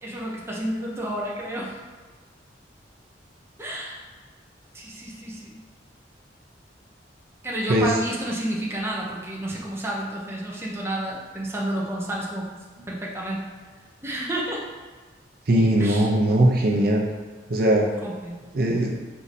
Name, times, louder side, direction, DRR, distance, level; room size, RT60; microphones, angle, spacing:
voice 1, 0.0-1.7 3.6-4.0 4.7-5.6 7.4-12.5 12.9-13.5 14.0-14.6 15.8-16.1 18.0-18.4, right 1 dB, 15° right, -4 dB, 0.6 m, -30 dB
voice 2, 15.5-17.0 17.5-17.9 18.5-18.9, right 1 dB, 55° right, -1 dB, 0.6 m, -19 dB
4.6 x 2.7 x 4.1 m, 1.4 s
head